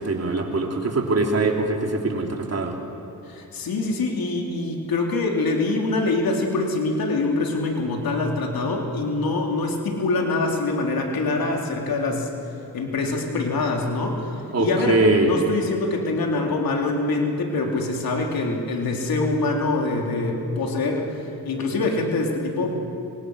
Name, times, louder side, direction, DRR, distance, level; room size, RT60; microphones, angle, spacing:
voice 1, 0.0-2.8 14.5-15.3, right 2 dB, 40° right, 2 dB, 3.6 m, -22 dB
voice 2, 3.3-12.3 12.7-14.2 14.6-21.1 21.5-22.8, left 2 dB, 65° left, 1 dB, 3.7 m, -24 dB
26.0 x 24.0 x 6.5 m, 2.8 s
cardioid pair, 65°, 37 cm